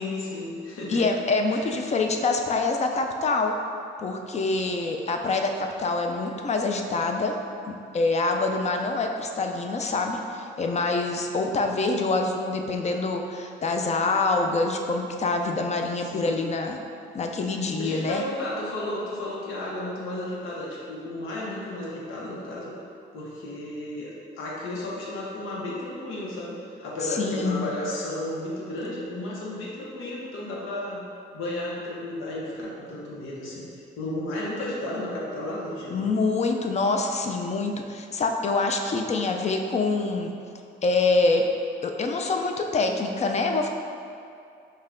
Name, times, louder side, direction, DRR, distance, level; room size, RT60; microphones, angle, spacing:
voice 1, 0.0-1.0 1.5-1.6 16.0-16.5 17.8-22.8 23.1-31.0 31.3-33.7 34.0-36.1, left 1 dB, 85° left, -5 dB, 0.9 m, -33 dB
voice 2, 0.9-3.6 4.0-7.4 7.7-16.8 17.1-18.2 27.1-27.7 35.9-40.3 40.8-41.4 41.8-43.7, left 3 dB, 35° left, 4 dB, 0.4 m, -25 dB
5.4 x 2.2 x 3.7 m, 2.5 s
cardioid pair, 90°, 20 cm